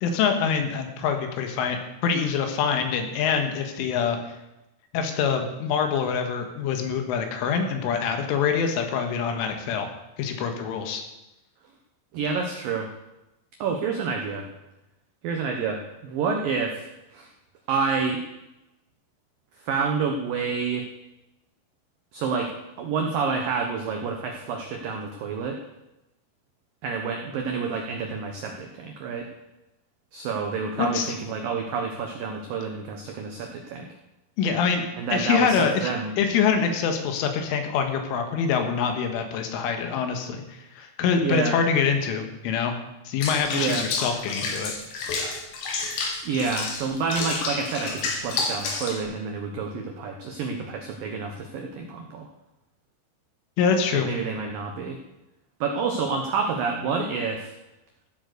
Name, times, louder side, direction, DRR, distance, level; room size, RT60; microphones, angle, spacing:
voice 1, 0.0-4.2 4.9-9.9 10.2-11.0 30.8-31.1 34.4-35.9 36.2-42.8 43.1-44.7 53.6-54.1, left 6 dB, 80° left, 5 dB, 4.0 m, -25 dB
voice 2, 12.1-12.9 13.6-14.5 15.2-16.9 17.1-17.3 17.7-18.2 19.5-20.9 22.1-22.5 22.8-25.6 26.8-29.3 30.1-33.9 35.0-36.1 41.2-41.6 43.5-43.9 46.2-52.3 54.0-55.0 55.6-57.5, right 5 dB, 85° right, 3 dB, 2.0 m, -28 dB
Water / Bathtub (filling or washing), 43.2-49.0, left 4 dB, 60° left, 3.8 m, -30 dB
15.5 x 8.1 x 6.7 m, 0.96 s
omnidirectional pair, 5.7 m